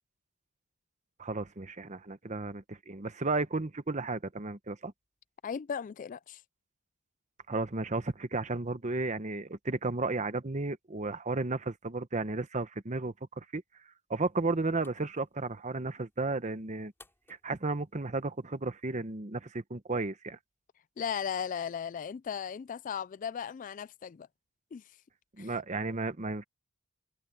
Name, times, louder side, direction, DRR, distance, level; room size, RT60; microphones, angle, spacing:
voice 1, 1.2-4.9 7.5-13.6 14.1-16.9 17.4-20.4 25.4-26.4, right 3 dB, 35° right, 1.0 m, -33 dB
voice 2, 5.4-6.4 21.0-24.3 24.7-24.8 25.4-25.6, left 7 dB, 35° left, 0.3 m, -36 dB
sound 1, 14.1-19.2, left 2 dB, 10° left, 6.1 m, -65 dB
head